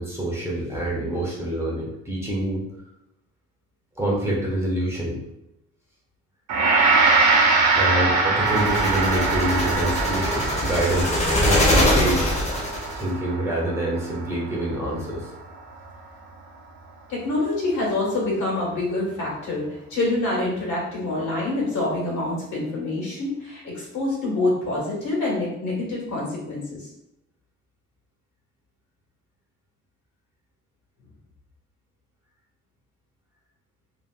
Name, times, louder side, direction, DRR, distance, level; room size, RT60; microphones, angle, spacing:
voice 1, 0.0-2.6 4.0-5.2 7.8-12.4 13.0-15.3, right 1 dB, 10° right, -4 dB, 1.0 m, -26 dB
Gong, 6.5-15.7, right 4 dB, 65° right, 0.8 m, -23 dB
sound 1, 8.5-13.0, left 1 dB, 20° left, 0.8 m, -23 dB
voice 2, 17.1-26.9, left 2 dB, 75° left, -4 dB, 1.3 m, -26 dB
3.2 x 2.7 x 2.2 m, 0.83 s
cardioid pair, 90°, 30 cm